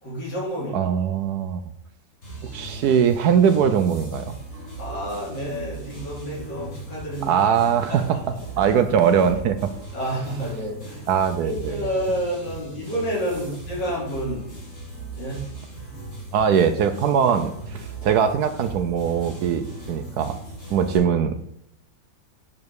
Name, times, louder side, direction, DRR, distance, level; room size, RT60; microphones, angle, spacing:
voice 1, 0.0-0.9 4.8-7.4 7.9-8.2 9.9-11.0 11.4-14.5 15.1-15.4 20.7-20.9, equal, 70° left, -6 dB, 3.6 m, -29 dB
voice 2, 0.7-1.6 2.4-4.3 7.2-8.2 8.6-9.7 11.1-11.9 16.3-20.4 20.7-21.5, right 7 dB, 70° right, 9 dB, 1.0 m, -21 dB
sound 1, 2.2-21.0, right 2 dB, 40° left, 3.1 m, -38 dB
8.3 x 5.2 x 4.6 m, 0.74 s
omnidirectional pair, 2.0 m